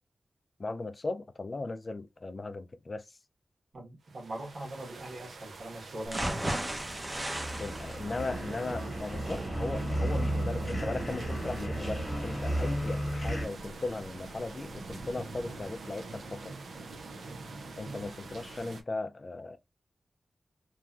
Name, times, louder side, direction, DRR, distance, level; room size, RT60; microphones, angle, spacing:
voice 1, 0.6-3.2 7.5-16.5 17.8-19.6, left 3 dB, 45° left, 0.4 m, -37 dB
voice 2, 3.7-6.7, right 1 dB, 65° right, 1.3 m, -42 dB
sound 1, 4.1-18.8, right 2 dB, 85° right, 0.5 m, -42 dB
sound 2, 6.1-14.0 14.4-14.5 14.9-15.0, right 1 dB, 25° right, 0.7 m, -38 dB
sound 3, 6.7-13.5, equal, 20° left, 1.2 m, -34 dB
3.0 x 2.4 x 2.4 m
cardioid pair, 65°, 0 cm